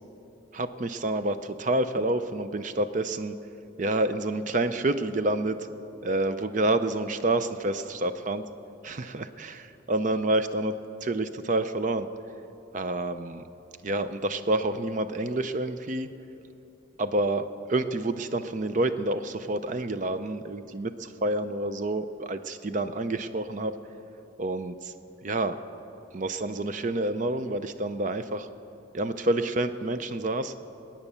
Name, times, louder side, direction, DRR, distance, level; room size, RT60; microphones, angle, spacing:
voice 1, 0.5-3.3 3.8-5.7 6.0-8.4 8.8-12.1 12.7-13.4 13.8-16.1 17.0-23.8 24.4-24.9 25.2-25.6 26.1-28.5 28.9-30.5, right 2 dB, 40° right, 11 dB, 0.5 m, -28 dB
20.0 x 9.1 x 6.9 m, 3.0 s
head